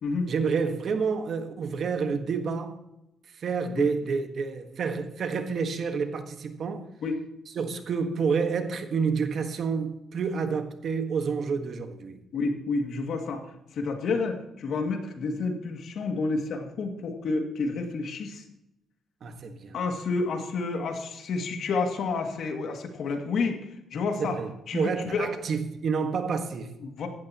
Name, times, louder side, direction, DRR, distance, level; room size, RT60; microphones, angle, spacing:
voice 1, 0.3-2.8 3.4-6.9 7.5-12.2 19.2-19.8 24.2-26.7, right 5 dB, 55° right, 1.5 m, -29 dB
voice 2, 12.3-13.4 13.7-18.4 19.7-23.6 23.9-24.4 24.7-25.3 26.8-27.1, left 4 dB, 65° left, 2.4 m, -29 dB
16.0 x 13.0 x 3.0 m
cardioid pair, 90°, 0 cm